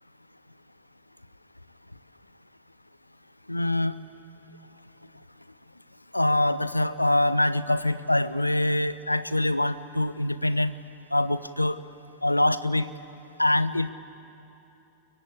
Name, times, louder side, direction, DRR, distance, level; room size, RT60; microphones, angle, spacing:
voice 1, 3.5-3.9 6.1-10.7 11.1-11.8 12.2-12.9 13.4-13.9, left 1 dB, 85° left, 16 dB, 0.8 m, -24 dB
29.5 x 23.0 x 8.5 m, 2.8 s
figure-of-eight pair, 90°, 0 cm